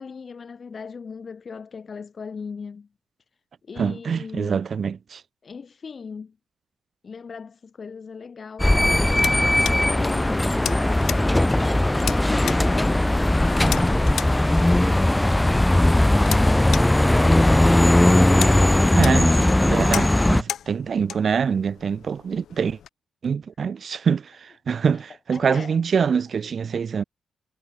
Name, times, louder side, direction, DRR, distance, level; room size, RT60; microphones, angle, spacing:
voice 1, 0.0-2.9 3.6-4.6 5.4-6.4 7.0-11.8 12.3-13.8 18.8-20.2 24.7-25.0 25.3-25.8, left 5 dB, 45° left, 7.8 m, -38 dB
voice 2, 3.8-5.2 19.0-22.8 23.2-27.0, right 6 dB, 55° right, 3.9 m, -25 dB
sound 1, 8.6-22.9, left 10 dB, 80° left, 2.1 m, -36 dB
sound 2, 8.6-20.4, left 1 dB, 10° left, 1.5 m, -18 dB
cardioid pair, 90°, 0 cm